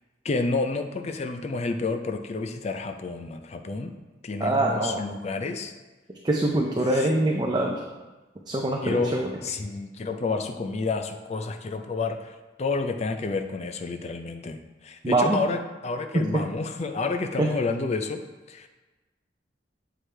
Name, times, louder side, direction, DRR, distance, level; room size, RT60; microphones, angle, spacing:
voice 1, 0.2-3.9 4.2-5.7 6.9-7.0 8.8-9.1 9.4-12.2 12.6-14.6 14.8-18.2 18.5-18.7, left 3 dB, 35° left, 6 dB, 0.4 m, -29 dB
voice 2, 4.4-5.0 6.2-7.8 8.5-9.3 15.0-15.4 17.4-17.5, right 2 dB, 20° right, 0 dB, 0.5 m, -24 dB
7.8 x 4.7 x 3.3 m, 1.2 s
head